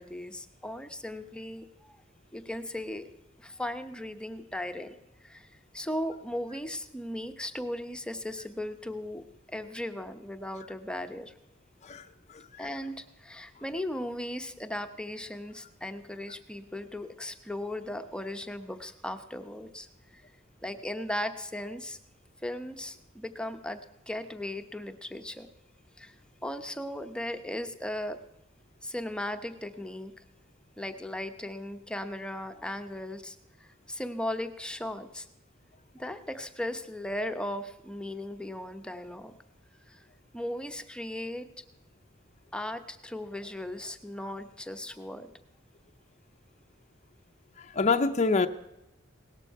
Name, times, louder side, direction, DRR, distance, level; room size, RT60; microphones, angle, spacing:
voice 1, 0.0-2.0 2.3-3.1 3.4-5.0 5.2-11.3 12.6-20.2 20.6-22.0 22.4-23.8 24.1-25.5 26.0-26.2 26.4-28.2 28.8-30.1 30.8-35.3 35.9-39.4 39.9-40.0 40.3-41.5 42.5-45.3, left 1 dB, 5° left, 7 dB, 0.8 m, -37 dB
voice 2, 11.8-12.6 47.6-48.5, left 4 dB, 35° left, 7 dB, 0.6 m, -27 dB
18.0 x 12.5 x 4.7 m, 0.90 s
head